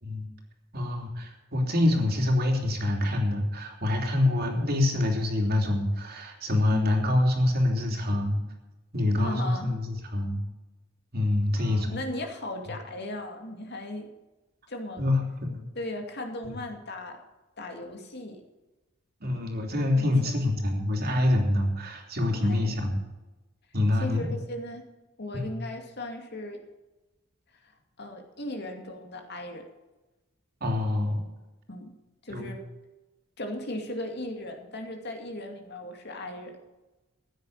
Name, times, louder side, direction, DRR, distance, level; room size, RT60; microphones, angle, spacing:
voice 1, 0.7-8.4 8.9-10.4 11.1-12.0 15.0-15.6 19.2-23.0 23.7-24.4 25.3-25.5 30.6-31.2 32.3-32.5, left 1 dB, 50° right, 2 dB, 3.2 m, -26 dB
voice 2, 9.2-9.8 11.6-14.1 14.7-15.0 15.7-17.2 17.6-18.4 19.9-20.1 22.4-22.7 23.9-24.8 25.2-26.6 27.6-29.6 31.7-31.9 32.2-32.6 33.4-36.5, left 1 dB, 55° left, 4 dB, 2.5 m, -37 dB
15.0 x 9.2 x 6.5 m, 1.1 s
head